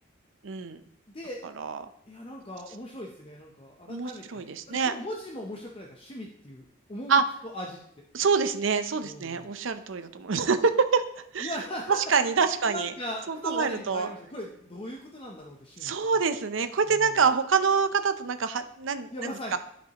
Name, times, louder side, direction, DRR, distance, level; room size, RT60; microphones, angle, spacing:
voice 1, 0.4-0.8 1.6-1.8 3.9-4.9 7.1-7.2 8.1-11.0 11.3-11.6 12.1-12.9 13.3-14.1 15.8-19.6, right 5 dB, 70° right, 10 dB, 0.6 m, -26 dB
voice 2, 2.1-8.0 9.0-9.6 11.4-12.0 12.7-15.9 16.8-17.2 19.1-19.6, equal, 25° left, 0 dB, 0.7 m, -39 dB
12.5 x 5.4 x 2.9 m, 0.71 s
head